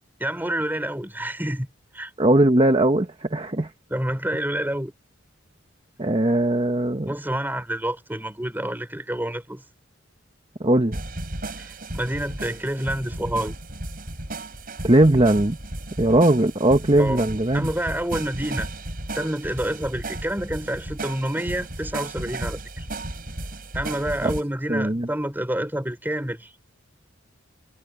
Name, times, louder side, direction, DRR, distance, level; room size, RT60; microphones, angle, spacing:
voice 1, 0.2-1.7 1.9-2.1 3.9-4.9 7.1-9.6 11.6-13.5 17.0-17.3 17.5-18.7 19.1-22.9 23.7-26.5, right 1 dB, 10° right, 4.3 m, -28 dB
voice 2, 2.2-3.7 6.0-7.1 10.6-11.0 14.8-15.6 16.0-17.7 24.2-24.3 24.7-25.1, right 1 dB, 30° right, 1.3 m, -19 dB
sound 1, 10.9-24.4, right 1 dB, 45° right, 6.6 m, -34 dB
head